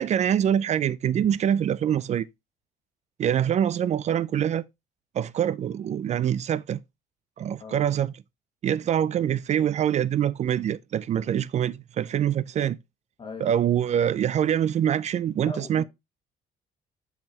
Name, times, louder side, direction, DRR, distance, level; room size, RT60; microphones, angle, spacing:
voice 1, 0.0-2.3 3.2-4.6 5.1-6.8 7.4-8.1 8.6-12.8 13.4-15.8, right 9 dB, 40° right, 0.4 m, -24 dB
voice 2, 15.4-15.8, left 4 dB, 30° left, 1.9 m, -39 dB
7.6 x 5.8 x 2.9 m
cardioid pair, 110°, 17 cm